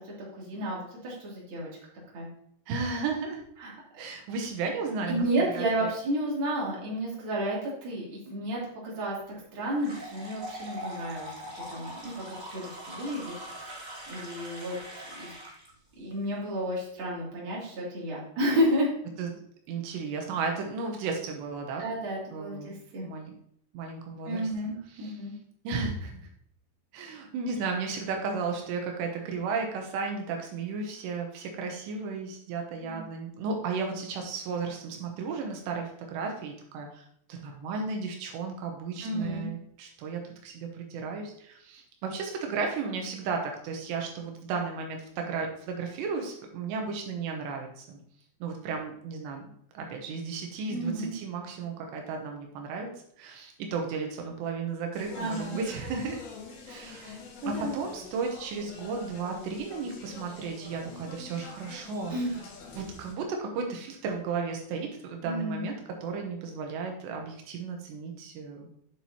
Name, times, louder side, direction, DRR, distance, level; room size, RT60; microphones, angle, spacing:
voice 1, 0.3-1.7 2.1-2.3 3.6-4.0 5.1-9.2 9.5-11.3 11.7-12.2 12.5-13.3 14.1-14.7 15.2-15.3 16.0-18.9 21.8-23.0 24.2-25.3 32.8-33.1 39.0-39.5 50.7-51.1 55.1-55.6 56.7-57.7 62.1-62.3 65.2-65.7, equal, 35° right, -5 dB, 3.0 m, -31 dB
voice 2, 2.7-3.4 4.0-5.2 5.5-5.9 19.2-19.3 19.7-21.9 22.3-22.7 23.0-23.3 23.7-24.5 24.9-25.1 25.6-26.2 26.9-48.0 48.4-49.5 49.7-52.9 53.2-56.2 56.7-57.1 57.5-62.2 62.8-65.8 66.0-68.7, right 4 dB, 80° right, 2 dB, 3.2 m, -34 dB
sound 1, 9.8-15.7, equal, 55° right, 0.4 m, -42 dB
Speech, 54.9-63.1, left 4 dB, 85° left, 3.9 m, -46 dB
9.3 x 7.2 x 2.8 m, 0.69 s
omnidirectional pair, 4.9 m